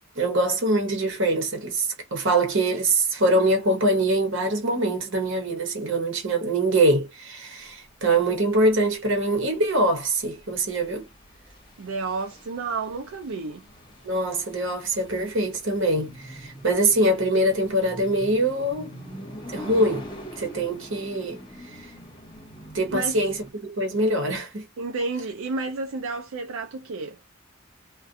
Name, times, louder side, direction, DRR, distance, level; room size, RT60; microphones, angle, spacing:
voice 1, 0.2-11.1 14.0-19.0 19.5-20.1 20.4-21.4 22.7-24.6, right 1 dB, 65° right, 1.0 m, -23 dB
sound 1, 7.7-23.5, equal, 25° left, 0.9 m, -44 dB
voice 2, 11.8-13.6 22.9-23.2 24.8-27.2, right 3 dB, 85° right, 0.4 m, -31 dB
2.4 x 2.2 x 2.6 m
head